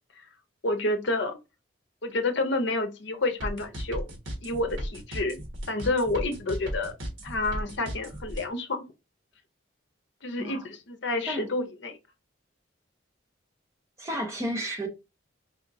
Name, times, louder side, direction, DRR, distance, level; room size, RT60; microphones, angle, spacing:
voice 1, 0.6-1.4 2.0-4.0 4.4-5.4 5.7-6.9 7.2-8.9 10.2-12.0, left 2 dB, 65° left, 0.7 m, -29 dB
sound 1, 3.4-8.4, equal, 80° right, 1.3 m, -35 dB
voice 2, 10.4-10.7 11.2-11.5 14.0-14.9, equal, 15° right, 0.9 m, -32 dB
4.4 x 2.8 x 2.6 m
head